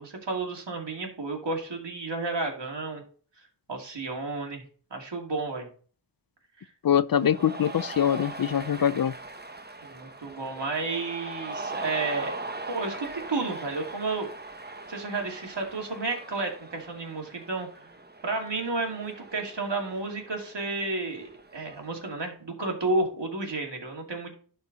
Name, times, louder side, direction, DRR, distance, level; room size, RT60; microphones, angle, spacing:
voice 1, 0.0-3.0 3.7-4.6 4.9-5.7 6.6-6.7 9.8-12.4 12.7-14.3 14.7-17.9 18.2-24.3, right 3 dB, 65° right, 2.5 m, -32 dB
voice 2, 6.8-9.1, left 9 dB, 50° left, 0.5 m, -23 dB
Cheering, 7.1-22.0, right 2 dB, 20° right, 0.9 m, -40 dB
11.5 x 4.5 x 4.1 m
wide cardioid pair, 55°, 45 cm